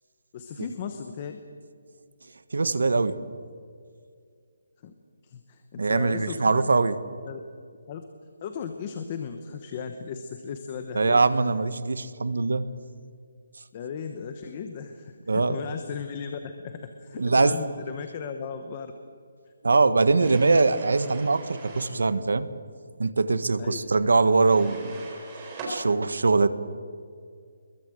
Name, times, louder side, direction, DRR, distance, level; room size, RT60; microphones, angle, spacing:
voice 1, 0.3-1.4 4.8-4.9 5.2-6.7 7.2-7.4 7.9-8.0 8.4-11.2 13.7-18.9 23.6-23.8, left 6 dB, 20° left, 7 dB, 1.1 m, -36 dB
voice 2, 2.5-3.2 5.8-6.9 10.9-12.7 15.3-15.6 17.2-17.6 19.6-22.5 23.0-24.9 25.7-26.5, right 3 dB, 85° right, 12 dB, 1.6 m, -22 dB
sound 1, 20.2-22.0 24.4-25.8, right 2 dB, 15° right, 4.0 m, -41 dB
24.0 x 22.0 x 7.9 m, 2.2 s
hypercardioid pair, 180°, 0 cm